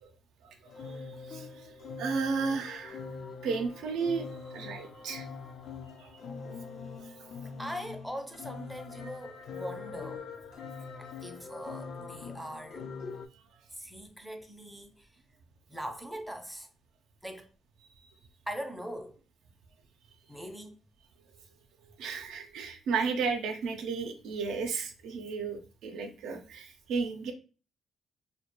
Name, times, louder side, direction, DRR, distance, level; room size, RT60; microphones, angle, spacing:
sound 1, 0.7-13.3, left 5 dB, 65° left, 0.4 m, -43 dB
voice 1, 2.0-3.0 3.4-4.3 4.5-5.3 6.0-6.1 22.0-27.3, right 5 dB, 85° right, 0.4 m, -33 dB
voice 2, 7.6-10.3 11.0-12.9 13.8-15.1 15.7-16.7 17.2-17.5 18.5-19.2 20.3-20.8, equal, 5° right, 0.4 m, -41 dB
2.2 x 2.2 x 2.9 m
cardioid pair, 90°, 0 cm